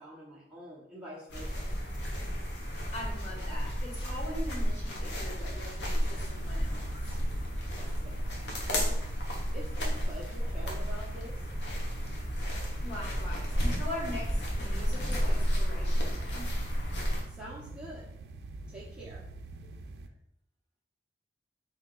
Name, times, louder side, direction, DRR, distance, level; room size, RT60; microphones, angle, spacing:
voice 1, 0.0-1.7 7.7-8.4 8.7-9.0 9.5-11.5 17.2-18.1 18.7-19.3, equal, 5° right, -7 dB, 0.7 m, -45 dB
sound 1, 1.3-17.2, equal, 75° left, 0.9 m, -32 dB
voice 2, 2.9-7.2 12.8-16.5, left 1 dB, 40° left, -5 dB, 1.7 m, -42 dB
sound 2, 6.1-20.1, right 3 dB, 65° right, 0.4 m, -46 dB
4.5 x 2.8 x 3.8 m, 0.75 s
head